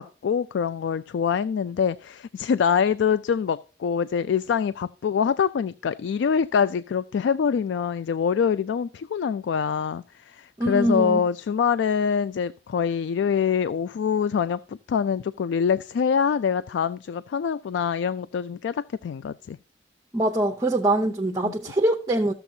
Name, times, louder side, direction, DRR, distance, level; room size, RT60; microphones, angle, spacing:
voice 1, 0.0-19.6 21.4-21.5, left 7 dB, 80° left, 0.3 m, -25 dB
voice 2, 10.6-11.2 20.1-22.3, right 1 dB, 20° right, 0.7 m, -23 dB
14.0 x 7.0 x 2.7 m
head